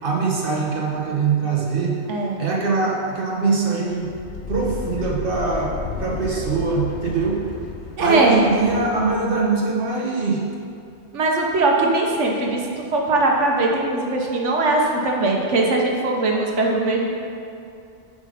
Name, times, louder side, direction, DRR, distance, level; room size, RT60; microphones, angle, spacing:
voice 1, 0.0-2.0 2.4-4.1 4.5-5.7 6.0-7.4 8.0-10.4, right 4 dB, 50° right, -2 dB, 1.3 m, -22 dB
voice 2, 2.1-2.4 8.0-8.4 11.1-17.1, right 2 dB, 75° right, 0 dB, 1.3 m, -20 dB
sound 1, 3.9-9.5, left 5 dB, 55° left, 0.7 m, -33 dB
8.1 x 5.2 x 5.1 m, 2.6 s
omnidirectional pair, 1.3 m